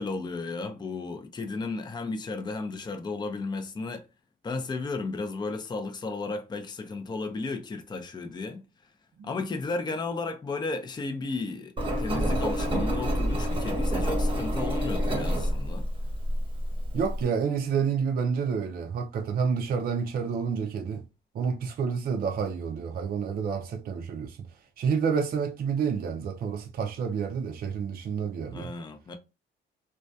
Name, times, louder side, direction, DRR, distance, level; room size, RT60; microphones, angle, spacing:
voice 1, 0.0-4.1 4.4-8.6 9.2-15.9 28.5-29.2, left 3 dB, 20° left, 0.5 m, -34 dB
Engine, 11.8-17.2, equal, 25° right, 0.8 m, -28 dB
voice 2, 16.9-21.0 21.3-24.5 24.8-28.7, right 6 dB, 50° right, 0.4 m, -29 dB
2.2 x 2.2 x 2.6 m
cardioid pair, 90°, 20 cm